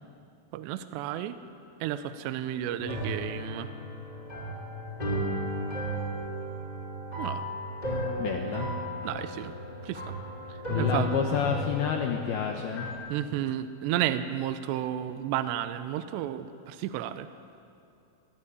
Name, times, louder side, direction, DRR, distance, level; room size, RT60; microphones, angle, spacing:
voice 1, 0.5-1.4 1.8-3.7 7.2-7.4 9.0-9.5 9.8-10.1 10.5-11.2 13.1-17.3, right 11 dB, 80° right, 11 dB, 2.6 m, -32 dB
sound 1, 2.8-12.9, left 1 dB, 10° left, 3.4 m, -34 dB
voice 2, 8.2-8.7 10.7-12.9, left 7 dB, 75° left, 4 dB, 2.3 m, -29 dB
21.5 x 15.0 x 9.8 m, 2.6 s
omnidirectional pair, 5.7 m